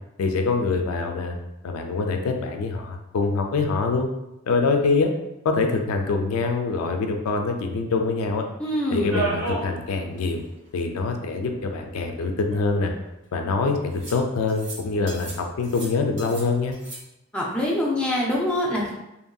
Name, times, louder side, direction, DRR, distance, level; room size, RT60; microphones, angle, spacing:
voice 1, 0.2-1.4 1.6-4.1 4.5-5.1 5.4-8.5 8.9-10.4 10.7-12.9 13.3-16.8, left 4 dB, 75° left, 4 dB, 0.3 m, -24 dB
voice 2, 8.6-9.1 17.3-18.9, left 1 dB, 5° left, -5 dB, 0.4 m, -24 dB
sound 1, 9.1-9.7 10.1-10.2 10.4-10.5 11.6-11.7 12.4-13.1 14.0-14.2 14.5-14.8 15.1-15.4 15.6-16.4 16.7-17.0, right 3 dB, 55° right, 1.0 m, -32 dB
2.9 x 2.6 x 2.2 m, 0.91 s
head